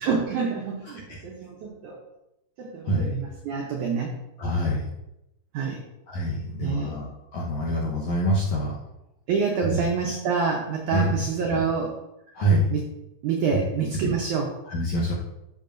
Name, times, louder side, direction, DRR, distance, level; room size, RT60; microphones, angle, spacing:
voice 1, 0.0-2.0 2.6-4.1 5.5-5.8 6.6-6.9 9.3-11.9 12.7-12.8 13.2-14.5, right 5 dB, 90° right, 0 dB, 1.7 m, -27 dB
voice 2, 4.4-4.9 6.1-8.7 9.6-9.8 10.9-11.6 12.3-12.7 13.5-13.6 14.0-14.1 14.6-15.1, equal, 70° left, -5 dB, 1.8 m, -26 dB
12.5 x 6.2 x 2.6 m, 0.90 s
omnidirectional pair, 4.7 m